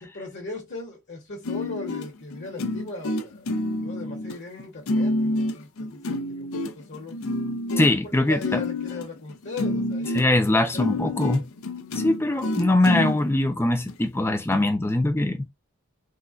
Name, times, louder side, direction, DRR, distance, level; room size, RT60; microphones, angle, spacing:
voice 1, 0.1-3.5 3.8-7.2 8.0-11.0, left 2 dB, 55° left, 1.0 m, -38 dB
sound 1, 1.4-13.2 13.9-14.0 14.5-14.7, left 2 dB, 80° left, 0.5 m, -28 dB
voice 2, 7.8-8.6 10.1-11.4 11.9-15.4, left 2 dB, 10° left, 0.4 m, -22 dB
3.7 x 2.1 x 2.4 m
head